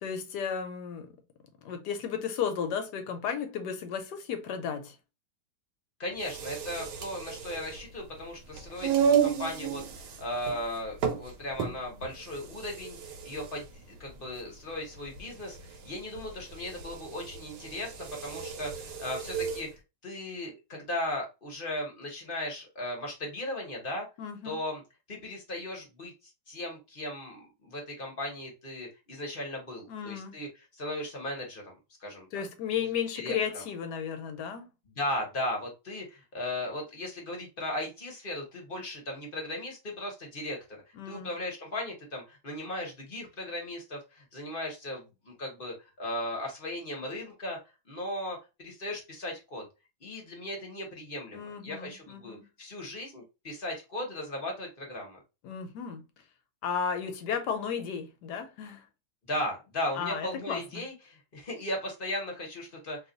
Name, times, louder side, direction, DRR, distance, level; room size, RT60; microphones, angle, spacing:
voice 1, 0.0-1.2 1.6-5.0 24.2-24.6 29.9-30.4 32.3-34.7 40.9-41.3 51.3-52.5 55.4-56.0 56.6-58.9 60.0-60.8, left 7 dB, 75° left, 1.2 m, -34 dB
voice 2, 6.0-19.7 20.0-24.1 24.4-24.8 25.1-30.5 30.7-32.3 33.1-33.4 35.0-40.6 40.9-47.6 47.9-49.6 50.0-55.2 59.3-63.0, left 1 dB, 40° left, 0.9 m, -37 dB
sound 1, 6.1-19.7, right 7 dB, 70° right, 1.2 m, -33 dB
2.9 x 2.3 x 3.8 m
omnidirectional pair, 1.9 m